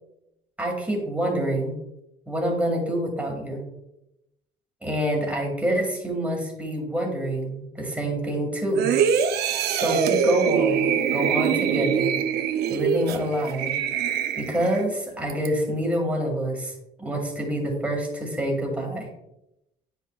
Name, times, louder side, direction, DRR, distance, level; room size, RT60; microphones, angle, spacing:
voice 1, 0.6-1.8 2.3-3.6 4.8-8.9 9.7-12.2 12.7-13.7 14.4-16.7 17.0-19.1, right 1 dB, 10° right, 0 dB, 2.0 m, -27 dB
sound 1, 8.7-14.9 15.3-15.5, right 7 dB, 70° right, 0.7 m, -24 dB
9.7 x 5.6 x 2.4 m, 0.87 s
cardioid pair, 110°, 17 cm